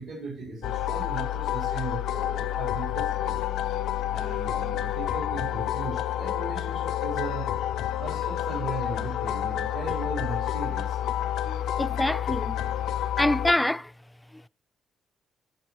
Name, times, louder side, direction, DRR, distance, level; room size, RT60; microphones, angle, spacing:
voice 1, 0.0-3.4 4.1-7.5 8.0-11.0, right 2 dB, 70° right, 3.6 m, -37 dB
sound 1, 0.6-13.5, left 11 dB, 80° left, 0.4 m, -29 dB
voice 2, 11.4-12.6 13.1-13.9, left 1 dB, 5° left, 0.4 m, -26 dB
15.0 x 5.3 x 3.0 m
cardioid pair, 90°, 0 cm